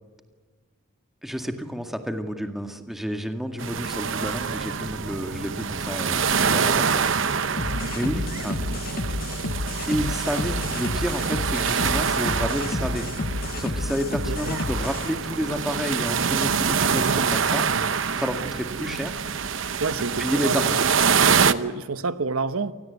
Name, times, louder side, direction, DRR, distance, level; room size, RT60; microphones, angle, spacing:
voice 1, 1.2-7.0 7.9-8.6 9.9-13.1 13.6-17.7 18.2-19.2 20.2-20.9, equal, ahead, 2.0 m, -30 dB
sound 1, 3.6-21.5, right 6 dB, 65° right, 0.9 m, -25 dB
sound 2, 7.6-15.1, left 3 dB, 45° left, 0.6 m, -31 dB
voice 2, 14.3-14.6 17.7-17.9 19.8-20.7 21.1-22.7, right 4 dB, 85° right, 1.0 m, -29 dB
28.5 x 19.5 x 8.3 m
head